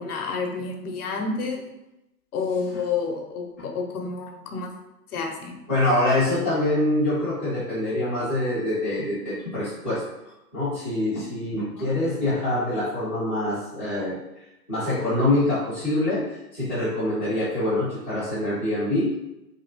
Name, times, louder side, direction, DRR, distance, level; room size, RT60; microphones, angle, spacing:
voice 1, 0.0-1.7 2.3-4.7 5.1-5.6 11.8-11.9, left 4 dB, 65° left, 3 dB, 0.8 m, -29 dB
voice 2, 5.7-10.0 10.5-14.2 14.7-19.1, left 1 dB, 10° left, -13 dB, 0.3 m, -25 dB
2.9 x 2.8 x 2.7 m, 0.92 s
hypercardioid pair, 130°, 49 cm